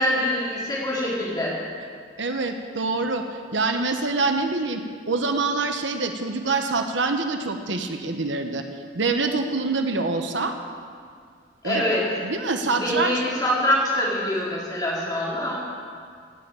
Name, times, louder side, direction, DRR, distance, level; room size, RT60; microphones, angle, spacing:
voice 1, 0.0-1.6 11.6-12.1 12.7-15.6, left 1 dB, 20° left, -6 dB, 4.2 m, -24 dB
voice 2, 2.2-3.2 3.5-8.6 8.9-10.5 11.6-11.8 12.2-13.1, right 3 dB, 80° right, 5 dB, 1.2 m, -25 dB
17.0 x 8.1 x 8.8 m, 2.1 s
head